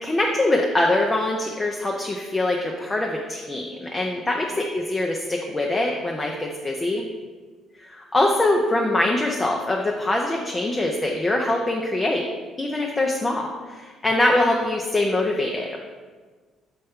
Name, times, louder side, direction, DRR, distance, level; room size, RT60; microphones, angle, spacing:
voice 1, 0.0-7.1 7.9-12.2 12.6-15.8, left 2 dB, 15° left, 1 dB, 0.5 m, -23 dB
6.6 x 5.6 x 3.6 m, 1.4 s
cardioid pair, 155°, 0 cm